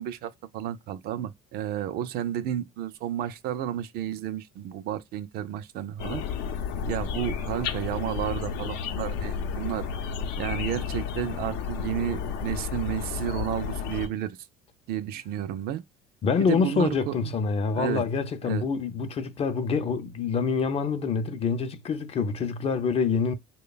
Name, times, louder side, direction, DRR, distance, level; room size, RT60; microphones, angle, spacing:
voice 1, 0.0-6.2 6.9-9.8 10.4-14.4 14.9-15.8 16.5-17.1 17.7-18.0 18.5-18.6, right 11 dB, 60° right, 0.4 m, -32 dB
sound 1, 6.0-14.1, left 6 dB, 75° left, 0.7 m, -32 dB
voice 2, 16.2-23.3, left 5 dB, 35° left, 0.5 m, -26 dB
3.1 x 2.2 x 3.9 m
supercardioid pair, 105°, 18 cm